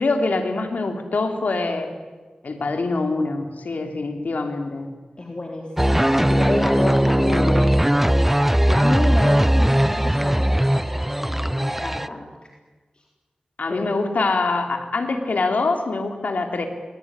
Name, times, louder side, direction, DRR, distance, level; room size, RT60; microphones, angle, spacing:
voice 1, 0.0-1.9 2.4-4.9 6.1-6.7 7.1-7.7 13.6-16.7, left 3 dB, 80° left, 4 dB, 3.3 m, -25 dB
voice 2, 5.2-8.2 8.7-12.3 13.7-13.9, left 2 dB, 40° left, 1 dB, 3.7 m, -29 dB
sound 1, 5.8-12.1, right 1 dB, 10° right, 0.8 m, -19 dB
27.0 x 21.0 x 10.0 m, 1.3 s
wide cardioid pair, 75°, 3 cm